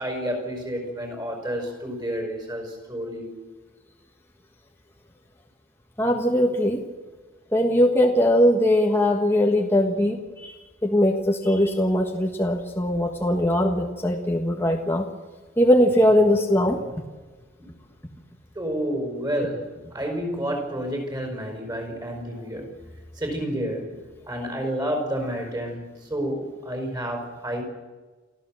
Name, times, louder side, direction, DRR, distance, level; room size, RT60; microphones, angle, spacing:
voice 1, 0.0-3.3 18.6-22.7 23.2-24.0 24.3-27.6, equal, 20° right, 4 dB, 5.4 m, -30 dB
voice 2, 6.0-6.8 7.5-10.5 10.8-15.0 15.6-16.8, left 1 dB, 10° left, 1 dB, 1.5 m, -20 dB
28.5 x 14.0 x 7.7 m, 1.3 s
head